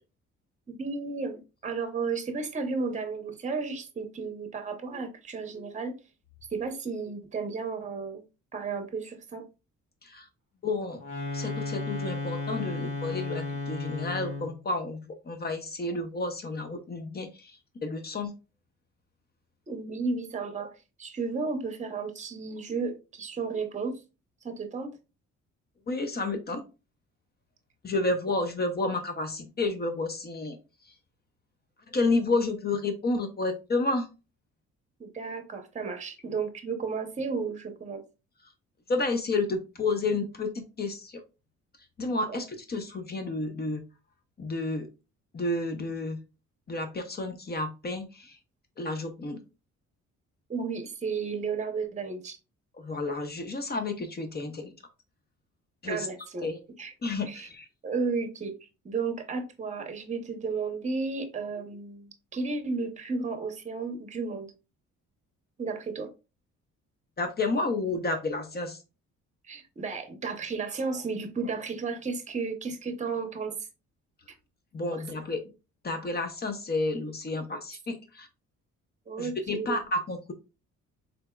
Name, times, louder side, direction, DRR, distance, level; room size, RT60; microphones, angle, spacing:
voice 1, 0.7-5.9 6.5-8.2 8.5-9.4 19.7-24.0 24.4-25.0 35.0-38.0 42.3-42.4 50.5-52.4 55.8-56.5 56.8-56.9 57.3-57.5 57.8-64.5 65.6-66.1 69.4-73.7 74.9-75.0 79.1-79.8, right 4 dB, 25° right, 0.8 m, -33 dB
voice 2, 10.6-11.0 11.3-18.3 25.9-26.6 27.8-30.6 30.8-30.9 31.9-34.1 38.9-41.2 42.0-43.8 44.4-44.9 45.3-46.2 46.7-48.4 48.8-49.4 52.8-54.7 55.8-56.1 56.4-56.6 57.0-57.7 67.2-68.8 74.7-75.4 75.8-78.3 79.2-80.3, left 2 dB, 30° left, 0.7 m, -31 dB
sound 1, 11.0-14.6, left 2 dB, 80° left, 2.2 m, -34 dB
3.9 x 3.4 x 2.2 m
cardioid pair, 90°, 30 cm